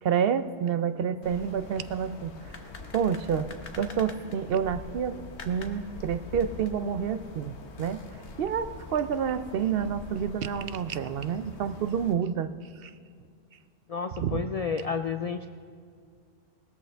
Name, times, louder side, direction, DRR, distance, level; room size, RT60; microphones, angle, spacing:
voice 1, 0.0-2.6 2.9-5.2 5.5-12.5 12.8-12.9 14.2-14.4, right 7 dB, 65° right, 11 dB, 0.7 m, -29 dB
sound 1, 1.2-12.1, left 3 dB, 80° left, 1.3 m, -44 dB
voice 2, 13.9-15.5, left 5 dB, 55° left, 7 dB, 0.4 m, -31 dB
19.0 x 13.0 x 3.4 m, 2.2 s
omnidirectional pair, 1.1 m